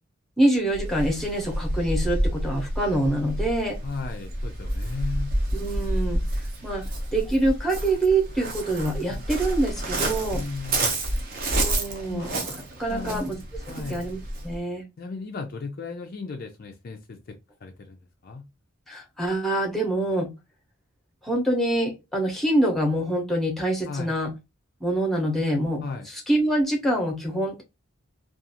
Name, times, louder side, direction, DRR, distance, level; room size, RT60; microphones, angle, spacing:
voice 1, 0.4-3.8 5.5-6.2 6.6-6.8 7.1-10.4 11.4-13.4 13.9-14.2 14.4-14.8 18.9-20.3 21.2-24.3 24.8-27.6, right 1 dB, ahead, 0.7 m, -25 dB
Waves surf, 0.7-14.6, right 1 dB, 45° right, 0.6 m, -29 dB
voice 2, 3.8-5.3 9.1-9.3 10.3-10.8 12.1-12.3 12.9-14.1 15.0-17.2 17.6-18.4 23.9-24.1 25.8-26.1, left 4 dB, 45° left, 0.4 m, -36 dB
2.4 x 2.3 x 2.7 m
head